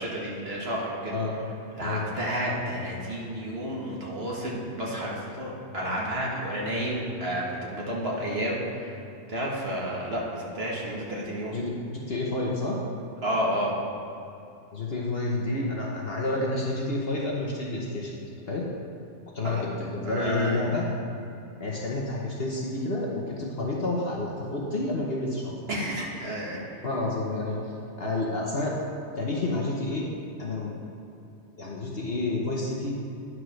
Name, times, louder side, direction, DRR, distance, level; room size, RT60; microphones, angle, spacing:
voice 1, 0.0-1.2 1.8-9.0 9.3-11.6 13.2-13.8 19.4-19.7 20.0-20.7 25.7-26.8, equal, 40° right, -3 dB, 1.6 m, -31 dB
voice 2, 12.1-12.8 14.7-18.2 18.5-18.6 19.3-20.9 21.6-25.6 26.8-27.6 28.0-28.9 29.2-30.1 30.4-30.7 31.6-33.0, left 2 dB, 45° left, -3 dB, 1.1 m, -29 dB
9.7 x 4.8 x 6.3 m, 2.7 s
omnidirectional pair, 1.6 m